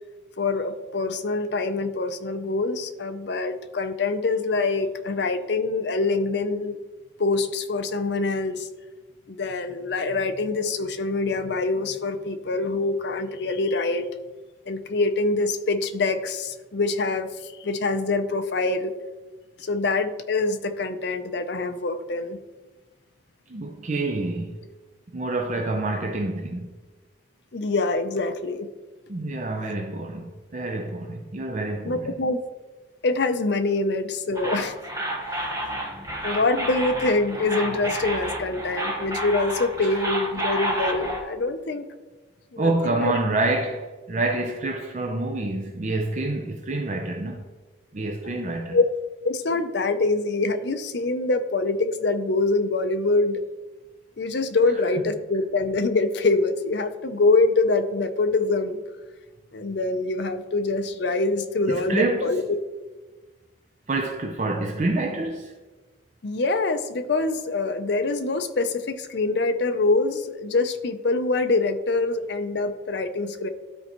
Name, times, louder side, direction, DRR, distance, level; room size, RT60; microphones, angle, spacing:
voice 1, 0.4-6.8 7.2-8.7 9.3-14.1 14.7-18.9 19.6-22.4 27.5-28.7 31.8-32.4 33.0-34.7 35.7-35.8 36.2-41.9 42.5-43.1 48.2-48.4 48.7-48.9 49.2-53.4 54.2-58.8 59.5-62.6 66.2-73.5, left 3 dB, 60° left, 0.5 m, -25 dB
voice 2, 23.5-24.6 25.1-26.7 29.1-32.2 42.6-47.4 47.9-48.8 61.7-62.4 63.9-65.5, right 2 dB, 40° right, 0.5 m, -27 dB
sound 1, 34.4-41.2, right 1 dB, 20° right, 1.1 m, -30 dB
12.5 x 4.4 x 3.0 m
head